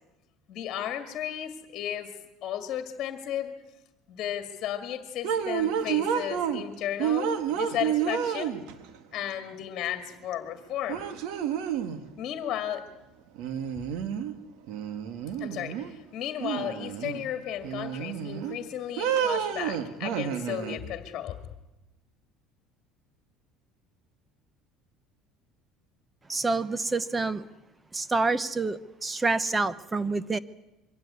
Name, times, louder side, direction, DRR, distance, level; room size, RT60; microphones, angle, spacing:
voice 1, 0.5-2.1 2.4-3.5 4.1-8.6 9.1-11.0 12.2-12.8 15.4-21.4, left 10 dB, 45° left, 8 dB, 2.2 m, -34 dB
sound 1, 5.2-6.6 7.0-8.9 10.3-10.4 10.9-12.0 13.4-14.3 14.7-15.9 16.4-17.3 17.6-18.6 19.0-20.8, right 8 dB, 70° right, 1.8 m, -30 dB
voice 2, 26.3-27.4 27.9-30.4, right 3 dB, 15° right, 17 dB, 0.8 m, -27 dB
23.5 x 16.5 x 9.7 m, 1.0 s
cardioid pair, 125°, 0 cm